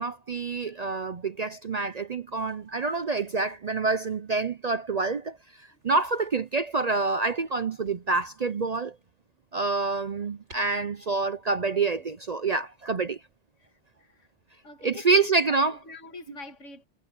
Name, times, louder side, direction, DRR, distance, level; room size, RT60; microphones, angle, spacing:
voice 1, 0.0-9.0 9.5-13.2 14.8-15.8, right 3 dB, 45° right, 0.5 m, -27 dB
sound 1, 2.3-4.3 5.7-7.1 7.8-9.1 9.5-10.6, right 1 dB, 65° right, 8.1 m, -60 dB
voice 2, 14.6-15.3 15.7-16.9, left 5 dB, 80° left, 2.2 m, -43 dB
omnidirectional pair, 1.3 m